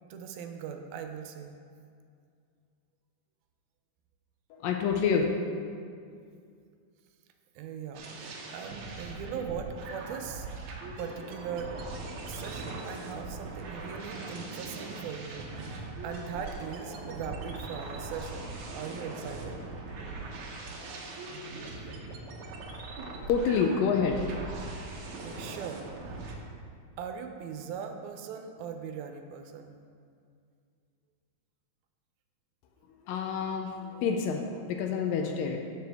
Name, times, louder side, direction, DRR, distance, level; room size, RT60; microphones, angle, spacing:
voice 1, 0.0-1.5 7.6-10.5 11.0-11.7 12.3-19.6 25.2-25.8 27.0-29.8, right 7 dB, 80° right, 5 dB, 2.5 m, -40 dB
voice 2, 4.5-5.2 23.3-24.2 33.1-35.6, left 6 dB, 80° left, 3 dB, 2.2 m, -28 dB
sound 1, 7.9-26.3, right 3 dB, 65° right, 2.0 m, -40 dB
13.0 x 6.7 x 3.5 m, 2.3 s
omnidirectional pair, 4.3 m